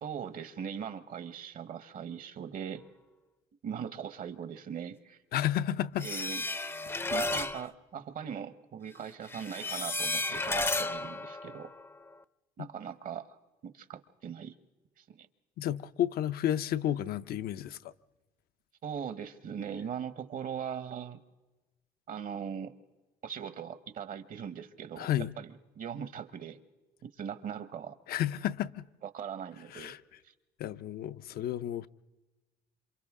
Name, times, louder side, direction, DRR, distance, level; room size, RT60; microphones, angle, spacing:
voice 1, 0.0-2.8 3.6-5.2 6.0-6.4 7.1-11.7 12.6-13.4 13.6-14.5 15.0-15.3 18.8-21.2 22.1-22.7 23.2-25.1 25.4-26.6 27.2-27.9 29.0-29.9, right 8 dB, 55° right, 1.1 m, -40 dB
voice 2, 5.3-6.3 15.6-17.9 25.0-25.3 28.1-28.8 29.7-30.0 30.6-31.9, left 11 dB, 65° left, 0.6 m, -32 dB
sound 1, 6.0-7.7 9.2-12.1, left 2 dB, 15° left, 0.6 m, -33 dB
28.0 x 26.0 x 3.7 m
cardioid pair, 110°, 17 cm